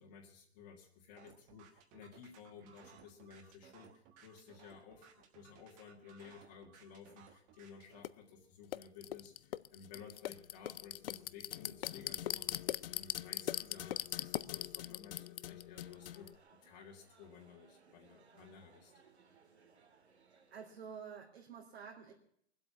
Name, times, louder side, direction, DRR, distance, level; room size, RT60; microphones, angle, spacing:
voice 1, 0.0-18.9, left 6 dB, 40° left, -1 dB, 2.1 m, -55 dB
sound 1, 1.2-8.0, right 8 dB, 25° right, 1.4 m, -61 dB
sound 2, 8.0-8.1 8.7-16.3, left 12 dB, 60° left, 0.5 m, -41 dB
sound 3, 15.8-21.0, right 5 dB, 85° right, 2.6 m, -66 dB
voice 2, 20.5-22.1, right 6 dB, 70° right, -3 dB, 3.2 m, -49 dB
20.5 x 8.2 x 7.0 m, 0.68 s
hypercardioid pair, 145°, 32 cm